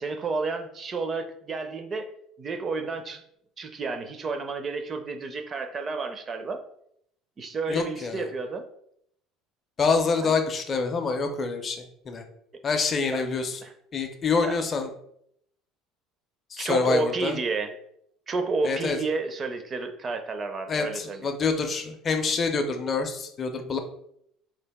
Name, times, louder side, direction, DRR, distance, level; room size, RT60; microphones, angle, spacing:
voice 1, 0.0-2.1 2.4-3.2 3.6-6.6 7.4-8.6 10.2-10.3 13.1-13.2 13.6-13.7 14.4-14.6 16.6-17.7 18.3-21.3, right 4 dB, 25° right, 7 dB, 0.4 m, -31 dB
voice 2, 7.7-8.3 9.8-12.2 12.6-13.6 13.9-14.9 16.5-17.4 18.6-19.0 20.7-23.8, left 4 dB, 25° left, 5 dB, 0.5 m, -26 dB
3.8 x 2.4 x 3.4 m, 0.72 s
cardioid pair, 150°, 0 cm